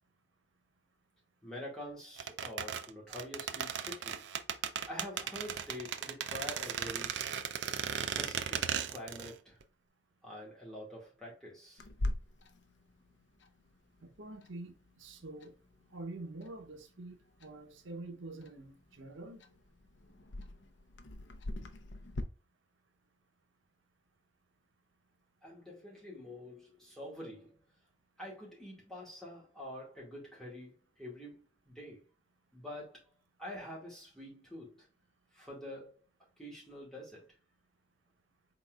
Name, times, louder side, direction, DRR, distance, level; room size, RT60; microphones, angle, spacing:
voice 1, 1.4-4.3 4.9-7.2 7.9-9.6 10.2-11.8 25.4-27.6 28.2-32.0 32.5-33.0 33.4-34.9 35.3-36.1 36.4-37.3, left 1 dB, 5° left, 1.8 m, -46 dB
sound 1, 2.2-9.3 9.6-9.7, right 8 dB, 65° right, 0.4 m, -36 dB
Clock, 11.8-22.2, left 1 dB, 70° left, 0.6 m, -44 dB
voice 2, 14.0-14.7 15.0-15.5 15.9-19.4, right 2 dB, 90° right, 0.8 m, -46 dB
4.3 x 3.9 x 2.3 m
head